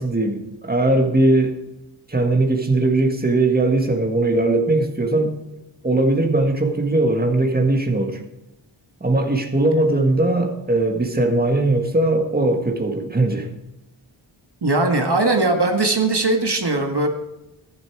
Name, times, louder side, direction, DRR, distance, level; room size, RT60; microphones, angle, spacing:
voice 1, 0.0-1.6 2.1-5.3 5.8-8.2 9.0-13.5, right 2 dB, 20° right, 3 dB, 1.7 m, -19 dB
voice 2, 14.6-17.1, right 2 dB, 55° right, 3 dB, 1.8 m, -19 dB
13.5 x 11.5 x 4.7 m, 0.93 s
wide cardioid pair, 55°, 48 cm